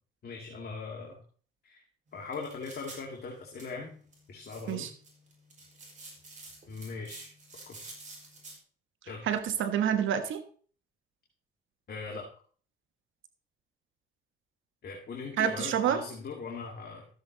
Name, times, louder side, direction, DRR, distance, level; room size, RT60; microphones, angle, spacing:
voice 1, 0.2-1.2 1.6-1.8 2.1-3.9 4.3-4.9 6.7-7.3 7.7-7.8 9.0-9.3 11.9-12.3 14.8-17.1, left 4 dB, 55° left, -1 dB, 2.3 m, -40 dB
sound 1, 2.1-8.6, right 2 dB, 40° right, 5.3 m, -51 dB
voice 2, 9.2-10.4 15.4-16.0, right 9 dB, 80° right, 9 dB, 1.4 m, -28 dB
13.0 x 7.8 x 3.9 m, 0.43 s
cardioid pair, 90°, 20 cm